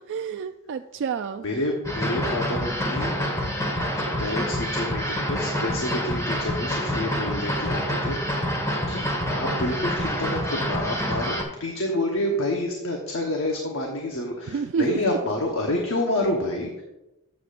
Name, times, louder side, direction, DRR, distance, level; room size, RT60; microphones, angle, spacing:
voice 1, 0.1-1.4 14.5-15.2, right 6 dB, 55° right, 8 dB, 0.3 m, -28 dB
voice 2, 1.4-3.2 3.8-3.9 4.2-8.2 8.9-16.7, left 1 dB, 65° left, 1 dB, 1.2 m, -28 dB
sound 1, 1.8-11.4, equal, 15° left, 1.5 m, -27 dB
13.0 x 7.4 x 2.5 m, 0.97 s
head